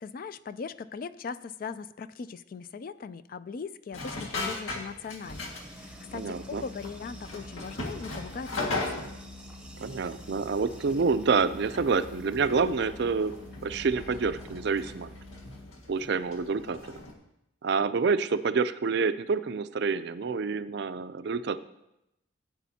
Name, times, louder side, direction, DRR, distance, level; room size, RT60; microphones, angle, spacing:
voice 1, 0.0-9.2, left 5 dB, 45° left, 14 dB, 0.3 m, -40 dB
sound 1, 3.9-5.9 6.1-6.3 6.6-9.2 9.7-17.1, left 2 dB, 90° left, 1.8 m, -39 dB
sound 2, 5.2-15.6, right 1 dB, 5° right, 0.8 m, -51 dB
Organ, 5.6-15.9, left 2 dB, 60° left, 1.0 m, -48 dB
voice 2, 6.1-6.6 9.8-13.3 13.6-15.1 15.9-17.0 17.6-21.6, right 5 dB, 55° right, 13 dB, 0.4 m, -27 dB
16.5 x 9.0 x 2.8 m, 0.84 s
head